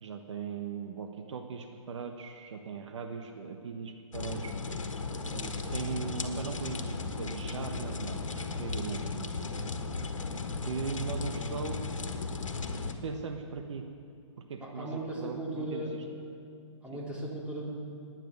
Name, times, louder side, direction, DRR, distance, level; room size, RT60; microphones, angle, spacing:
voice 1, 0.0-4.5 5.3-9.6 10.6-11.8 13.0-13.8 14.4-16.0 16.9-17.0, right 5 dB, 70° right, 5 dB, 1.4 m, -39 dB
sound 1, 4.1-12.9, left 4 dB, 85° left, 1.5 m, -36 dB
voice 2, 14.6-16.0 16.8-17.6, right 1 dB, 10° right, -4 dB, 3.3 m, -37 dB
19.5 x 9.2 x 7.0 m, 2.4 s
hypercardioid pair, 135°, 16 cm